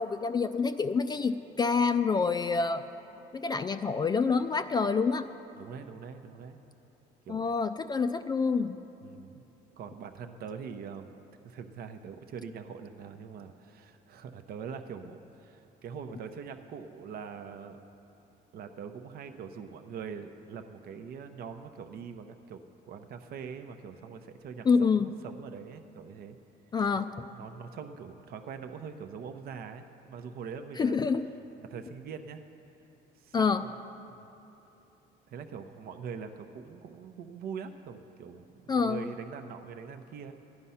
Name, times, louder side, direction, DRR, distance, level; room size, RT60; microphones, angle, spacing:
voice 1, 0.0-2.8 3.3-5.3 7.3-8.8 24.7-25.1 26.7-27.1 30.8-31.3 33.3-33.6 38.7-39.1, left 5 dB, 25° left, 9 dB, 0.3 m, -27 dB
voice 2, 5.5-6.6 7.3-7.5 9.0-9.4 9.8-11.1 11.4-17.8 18.5-26.4 26.9-27.0 27.3-30.9 31.6-32.4 33.2-33.7 35.3-40.3, right 6 dB, 65° right, 7 dB, 0.7 m, -43 dB
14.5 x 10.5 x 5.6 m, 2.9 s
cardioid pair, 110°, 17 cm